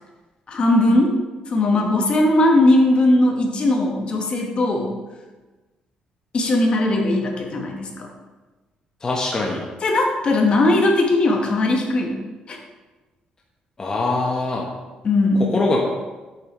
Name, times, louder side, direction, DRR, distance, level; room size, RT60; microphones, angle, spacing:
voice 1, 0.5-1.1 1.5-4.9 6.3-8.1 9.8-12.1 12.5-12.6 15.0-15.5, left 2 dB, 40° left, 2 dB, 1.3 m, -18 dB
voice 2, 9.0-9.6 13.8-14.7 15.5-15.8, left 2 dB, 25° left, -2 dB, 1.1 m, -22 dB
8.7 x 7.2 x 3.1 m, 1.2 s
cardioid pair, 125°, 3 cm